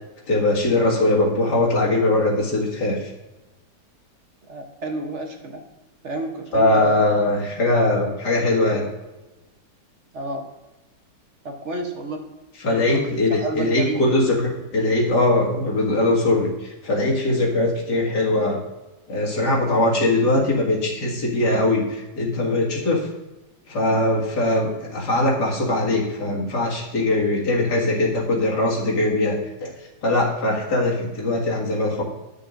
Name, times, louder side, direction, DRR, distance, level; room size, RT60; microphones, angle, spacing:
voice 1, 0.3-3.1 6.5-8.8 12.6-18.6 19.1-23.0 23.7-29.7 30.0-32.0, left 2 dB, 70° left, -3 dB, 2.5 m, -21 dB
voice 2, 4.5-5.6 6.0-7.0 10.1-10.5 11.4-12.2 12.7-14.0 24.4-24.6, right 2 dB, 50° right, 3 dB, 1.1 m, -30 dB
13.0 x 6.8 x 2.6 m, 1.1 s
omnidirectional pair, 1.9 m